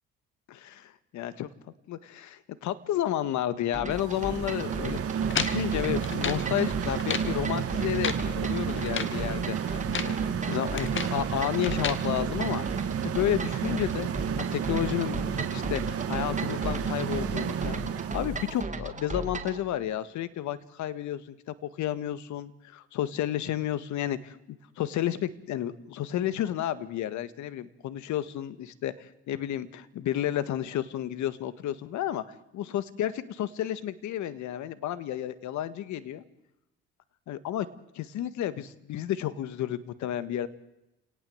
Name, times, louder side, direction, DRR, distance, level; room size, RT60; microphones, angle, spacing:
voice 1, 0.5-1.5 1.9-5.0 5.4-12.6 13.0-14.1 14.4-17.8 18.1-24.4 24.8-32.2 32.5-36.2 37.3-37.7 37.9-40.5, left 12 dB, 70° left, 14 dB, 1.7 m, -31 dB
sound 1, 3.7-19.6, right 2 dB, 25° right, 2.5 m, -37 dB
sound 2, 4.0-18.5, right 8 dB, 50° right, 1.9 m, -31 dB
sound 3, 5.3-6.5 6.9-7.3 7.8-8.3 8.8-9.2 9.7-10.2 10.5-11.2 11.6-12.0, left 6 dB, 40° left, 2.2 m, -33 dB
29.0 x 18.5 x 7.9 m, 0.93 s
supercardioid pair, 80°, 30 cm